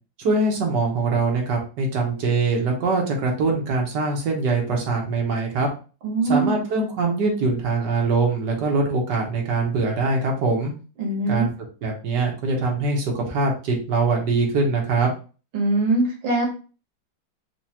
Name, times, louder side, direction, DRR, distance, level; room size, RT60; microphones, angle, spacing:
voice 1, 0.2-5.7 6.2-10.7 11.3-11.5 11.8-15.1, right 3 dB, 60° right, 0 dB, 1.5 m, -23 dB
voice 2, 6.0-6.6 11.0-11.5 15.5-16.5, right 2 dB, 80° right, -1 dB, 2.0 m, -22 dB
4.6 x 2.4 x 2.8 m, 0.35 s
omnidirectional pair, 2.2 m